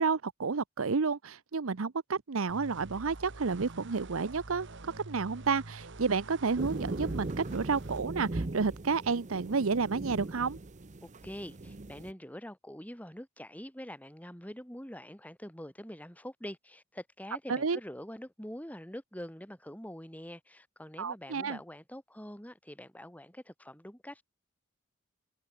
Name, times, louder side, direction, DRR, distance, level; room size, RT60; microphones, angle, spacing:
voice 1, 0.0-4.7 5.1-10.6 17.5-17.8 21.0-21.6, right 4 dB, 80° right, 0.8 m, -30 dB
sound 1, 2.5-8.0, right 2 dB, 60° right, 1.5 m, -47 dB
sound 2, 6.6-12.1, right 2 dB, 35° right, 0.8 m, -39 dB
voice 2, 11.0-24.2, equal, 10° left, 7.1 m, -45 dB
head